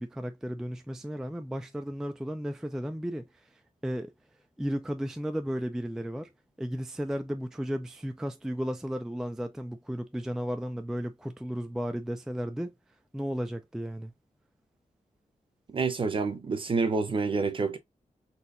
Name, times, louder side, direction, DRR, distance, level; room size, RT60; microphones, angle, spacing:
voice 1, 0.0-3.2 3.8-4.1 4.6-6.3 6.6-12.7 13.1-14.1, equal, 5° right, 0.3 m, -34 dB
voice 2, 15.7-17.8, right 4 dB, 35° right, 0.7 m, -28 dB
4.2 x 2.8 x 2.5 m
wide cardioid pair, 175°, 14 cm